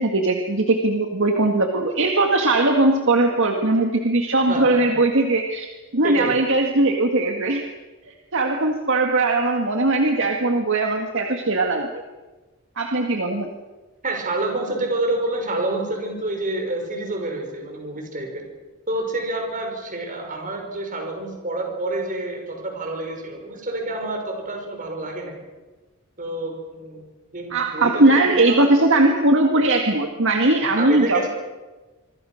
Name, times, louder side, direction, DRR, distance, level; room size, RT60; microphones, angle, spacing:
voice 1, 0.0-7.6 8.1-11.9 12.8-13.5 27.5-31.3, right 2 dB, 60° right, 3 dB, 1.9 m, -19 dB
voice 2, 4.5-4.8 6.0-6.4 14.0-18.4 18.9-25.4 26.2-27.0 27.3-28.6 30.8-31.3, right 2 dB, 40° right, 3 dB, 6.0 m, -28 dB
25.5 x 24.0 x 6.5 m, 1.2 s
head